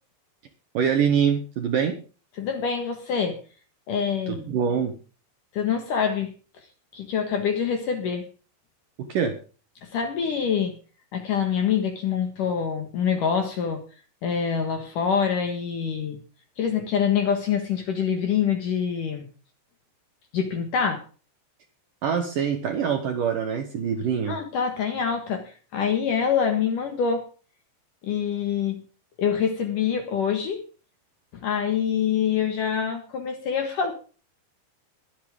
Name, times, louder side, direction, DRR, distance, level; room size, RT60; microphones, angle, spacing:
voice 1, 0.7-2.0 4.3-4.9 9.0-9.4 22.0-24.4, right 7 dB, 65° right, 6 dB, 2.3 m, -24 dB
voice 2, 2.3-3.4 3.9-4.5 5.5-6.7 6.9-8.3 9.8-10.8 11.1-13.8 14.2-16.2 16.6-19.3 20.3-21.0 24.3-27.3 28.0-28.9 29.2-30.6 31.3-33.9, left 7 dB, 60° left, 6 dB, 2.4 m, -25 dB
22.5 x 8.4 x 3.6 m, 0.36 s
omnidirectional pair, 5.4 m